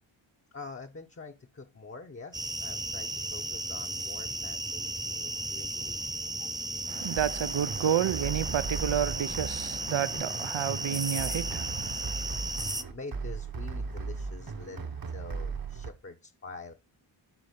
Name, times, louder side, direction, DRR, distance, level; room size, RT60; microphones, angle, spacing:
voice 1, 0.5-6.0 6.4-6.7 12.8-16.7, left 3 dB, 25° left, 0.8 m, -46 dB
sound 1, 2.3-12.8, right 1 dB, 10° right, 0.5 m, -35 dB
voice 2, 6.9-12.8, right 10 dB, 65° right, 0.6 m, -31 dB
sound 2, 7.2-15.9, right 4 dB, 45° right, 1.1 m, -37 dB
12.0 x 4.0 x 5.2 m
wide cardioid pair, 105°, 49 cm